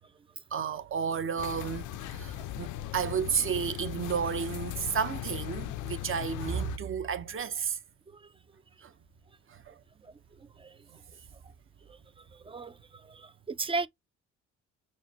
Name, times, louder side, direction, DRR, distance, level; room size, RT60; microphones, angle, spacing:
voice 1, 0.5-7.8 8.8-8.9 9.5-9.7, right 7 dB, 45° right, 0.8 m, -32 dB
sound 1, 1.4-6.8, left 13 dB, 80° left, 0.5 m, -38 dB
voice 2, 12.4-13.9, right 3 dB, 20° right, 0.3 m, -36 dB
6.3 x 2.1 x 2.8 m
cardioid pair, 90°, 30 cm